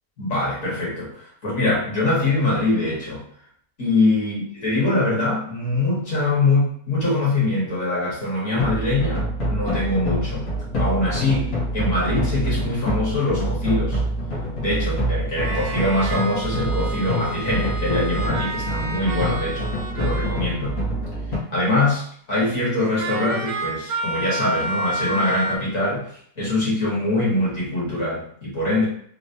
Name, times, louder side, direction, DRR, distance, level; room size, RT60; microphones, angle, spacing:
voice 1, 0.2-3.2 3.8-10.5 10.8-14.0 14.6-19.7 19.9-20.8 21.5-26.1 26.4-28.8, left 2 dB, 65° left, -6 dB, 1.8 m, -23 dB
sound 1, 8.6-21.4, right 1 dB, 85° left, 1.7 m, -26 dB
sound 2, 13.2-13.3 15.4-20.8 23.0-25.6, right 2 dB, 65° right, 0.7 m, -30 dB
3.9 x 2.2 x 2.6 m, 0.63 s
omnidirectional pair, 1.5 m